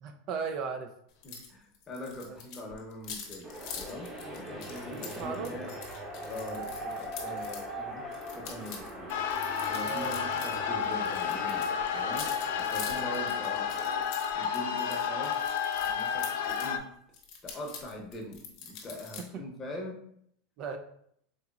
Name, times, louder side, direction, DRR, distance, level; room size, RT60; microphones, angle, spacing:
voice 1, 0.0-0.9 2.3-2.4 5.1-5.5 9.8-10.2 19.2-19.4 20.6-20.8, right 5 dB, 45° right, 5 dB, 0.3 m, -36 dB
sound 1, 1.2-1.5 1.7-7.6 8.1-10.6 10.8-16.7 17.1-19.2, left 6 dB, 55° left, 0.9 m, -45 dB
voice 2, 1.2-5.7 6.3-8.1 8.3-9.1 9.7-13.7 14.3-15.4 15.8-16.9 17.4-20.0, left 1 dB, 20° left, 0 dB, 0.8 m, -42 dB
sound 2, 3.4-14.0, right 1 dB, 15° right, 0.8 m, -41 dB
sound 3, 9.1-16.8, left 7 dB, 75° left, 0.4 m, -31 dB
3.9 x 2.9 x 2.3 m, 0.70 s
supercardioid pair, 140°, 0 cm